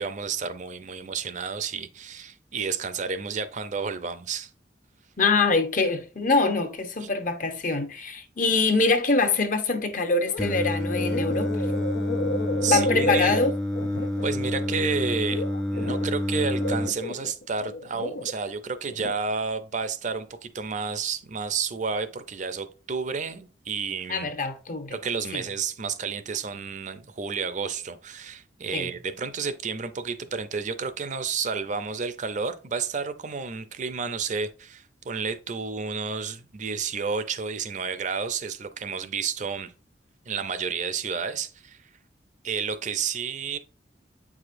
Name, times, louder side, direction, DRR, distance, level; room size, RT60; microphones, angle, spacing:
voice 1, 0.0-4.5 7.0-7.1 12.6-13.4 14.2-15.4 15.7-24.3 24.9-39.7 40.3-41.8 42.4-43.6, right 5 dB, 45° right, 0.5 m, -31 dB
voice 2, 5.2-11.6 12.7-13.5 24.1-25.0 25.3-25.4 28.7-28.9, left 3 dB, 50° left, 0.9 m, -24 dB
sound 1, 10.3-10.6 10.8-16.2 16.6-18.3 18.7-19.1, left 1 dB, 85° left, 0.6 m, -31 dB
Singing, 10.4-16.9, left 1 dB, 5° left, 0.5 m, -28 dB
8.0 x 4.9 x 2.6 m
head